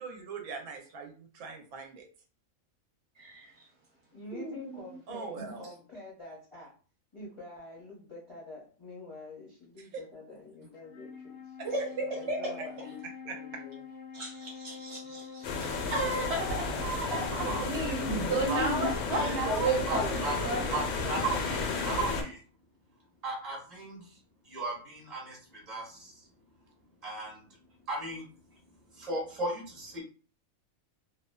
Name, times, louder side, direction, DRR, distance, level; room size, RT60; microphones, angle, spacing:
voice 1, 0.0-2.0 5.1-5.7 9.8-10.0 13.3-13.6 17.4-17.8, right 5 dB, 85° right, 1.1 m, -41 dB
voice 2, 3.2-3.5 4.3-4.8 11.6-12.7 14.1-17.1 17.6-20.2 20.4-20.7, right 2 dB, 60° right, 1.0 m, -33 dB
voice 3, 4.1-6.7 7.1-11.5 12.1-13.8, left 3 dB, 35° left, 0.5 m, -47 dB
Wind instrument woodwind instrument, 10.7-20.2, left 6 dB, 65° left, 0.8 m, -48 dB
sound 1, 15.4-22.2, left 4 dB, 90° left, 1.0 m, -33 dB
voice 4, 16.8-22.4 23.2-24.0 24.4-26.2 27.0-27.4 27.9-28.2 28.9-30.0, right 2 dB, 30° right, 0.9 m, -35 dB
2.6 x 2.1 x 2.2 m
omnidirectional pair, 1.4 m